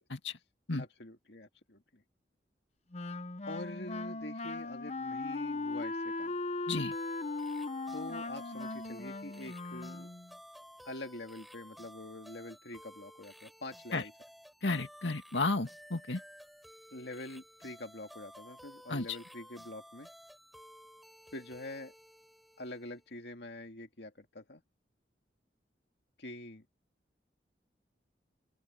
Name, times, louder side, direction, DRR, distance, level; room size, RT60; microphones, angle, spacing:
voice 1, 0.7-2.0 3.5-6.3 7.9-10.1 10.9-14.1 16.9-20.1 21.3-21.9 22.6-24.6 26.2-26.7, left 1 dB, 65° left, 2.2 m, -45 dB
Wind instrument woodwind instrument, 2.9-10.3, left 2 dB, 40° left, 0.8 m, -38 dB
sound 1, 6.9-23.1, equal, ahead, 6.0 m, -54 dB
voice 2, 14.6-16.2 18.9-19.1, left 3 dB, 90° left, 2.2 m, -32 dB
open air
head